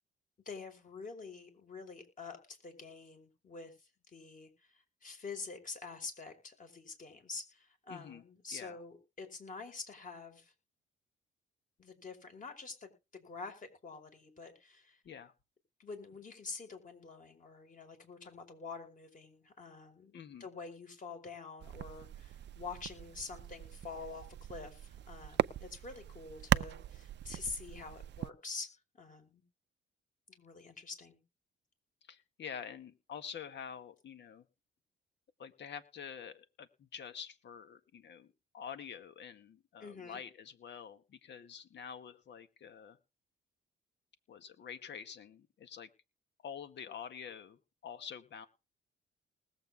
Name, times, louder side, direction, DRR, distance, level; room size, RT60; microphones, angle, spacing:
voice 1, 0.4-10.5 11.8-15.0 15.8-20.1 20.4-29.4 30.3-31.2 39.8-40.2, left 4 dB, 40° left, 6 dB, 4.9 m, -47 dB
voice 2, 7.9-8.2 8.5-8.8 15.0-15.3 20.1-20.5 32.0-34.5 35.4-43.0 44.3-45.9 46.4-48.5, left 7 dB, 60° left, 10 dB, 1.8 m, -47 dB
sound 1, 21.6-28.3, right 11 dB, 60° right, 0.7 m, -38 dB
20.0 x 7.8 x 3.6 m, 0.29 s
cardioid pair, 90°, 20 cm